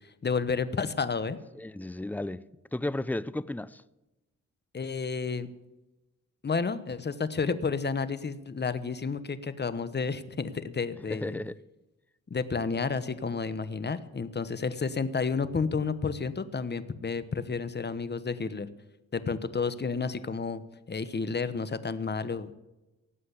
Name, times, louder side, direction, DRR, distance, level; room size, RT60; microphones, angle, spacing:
voice 1, 0.2-1.4 4.7-5.5 6.4-11.4 12.3-18.7 19.1-20.6 20.9-22.5, left 5 dB, 35° left, 1.1 m, -31 dB
voice 2, 1.5-3.8 11.1-11.6, left 1 dB, 5° left, 0.5 m, -34 dB
18.0 x 7.7 x 8.3 m
cardioid pair, 85°, 30 cm